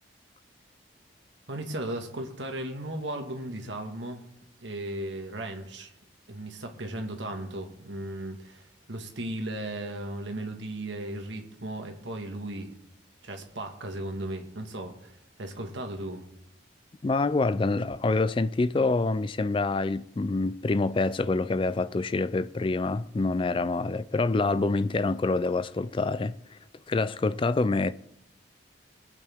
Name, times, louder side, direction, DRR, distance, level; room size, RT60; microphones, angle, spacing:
voice 1, 1.5-4.2 4.6-5.9 6.3-12.7 13.2-15.1 15.4-16.2, right 1 dB, 70° right, 1.7 m, -36 dB
voice 2, 17.0-26.4 26.9-27.9, left 3 dB, 25° left, 0.3 m, -26 dB
21.5 x 8.3 x 3.6 m
head